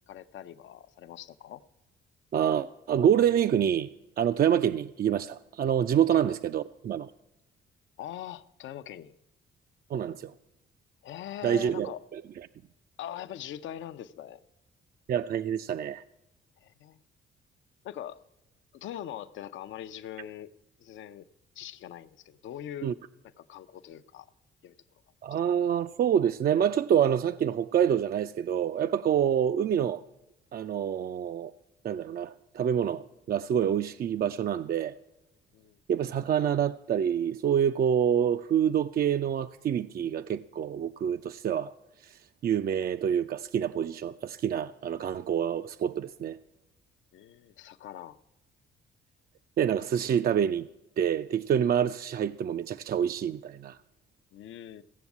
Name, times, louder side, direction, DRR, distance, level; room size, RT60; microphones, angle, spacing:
voice 1, 0.1-1.6 6.1-6.3 8.0-9.1 11.0-12.0 13.0-14.4 16.6-17.0 17.8-18.2 18.7-20.5 20.8-21.3 21.6-22.9 23.2-24.3 24.6-24.7 35.5-35.8 47.1-48.2 54.3-54.8, left 11 dB, 75° left, 0.6 m, -42 dB
voice 2, 2.3-3.9 4.2-7.1 9.9-10.3 11.4-12.2 15.1-16.0 22.8-22.9 25.2-30.0 30.5-31.5 31.8-35.0 35.9-41.7 42.0-46.4 49.6-50.7 51.0-53.8, right 9 dB, 50° right, 0.4 m, -27 dB
16.0 x 7.1 x 8.3 m
cardioid pair, 90°, 20 cm